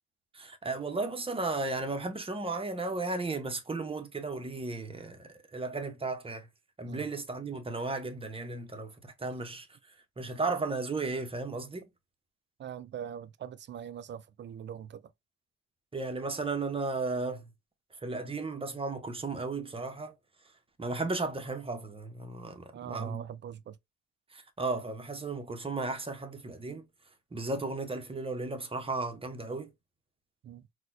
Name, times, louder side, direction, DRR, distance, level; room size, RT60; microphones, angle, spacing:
voice 1, 0.3-6.5 6.8-9.7 10.2-11.9 15.9-17.5 18.0-20.1 20.8-23.2 24.3-26.8 27.3-29.7, right 3 dB, 20° right, 0.8 m, -35 dB
voice 2, 12.6-15.0 22.7-23.8 30.4-30.7, right 9 dB, 40° right, 0.4 m, -42 dB
4.1 x 2.3 x 2.6 m
cardioid pair, 90°, 30 cm